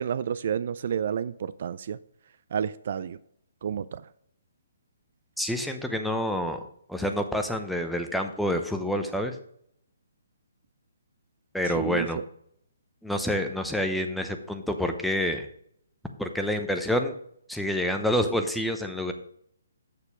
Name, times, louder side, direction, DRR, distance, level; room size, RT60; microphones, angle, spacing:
voice 1, 0.0-2.0 2.5-3.2 3.6-4.0 11.7-12.2, right 8 dB, 50° right, 16 dB, 0.3 m, -30 dB
voice 2, 5.4-6.6 6.9-9.4 11.5-12.2 13.0-15.5 16.2-17.1 17.5-19.1, equal, ahead, 5 dB, 0.7 m, -28 dB
7.0 x 6.7 x 5.9 m, 0.68 s
hypercardioid pair, 160°, 0 cm